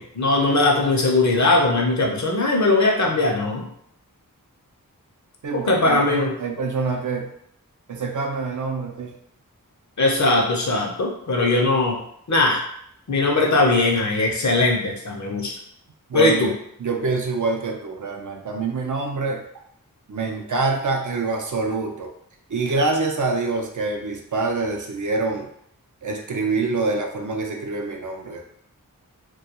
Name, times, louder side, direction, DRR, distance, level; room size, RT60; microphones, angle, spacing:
voice 1, 0.0-3.7 5.5-6.3 10.0-12.0 12.3-12.6 13.1-15.5 16.1-16.5, left 2 dB, 55° left, -1 dB, 0.6 m, -20 dB
voice 2, 5.4-7.3 7.9-9.1 16.1-16.4 16.8-19.4 20.1-22.1 22.5-25.5 26.0-28.4, right 3 dB, 60° right, 2 dB, 0.5 m, -25 dB
2.3 x 2.2 x 2.8 m, 0.70 s
wide cardioid pair, 45°, 34 cm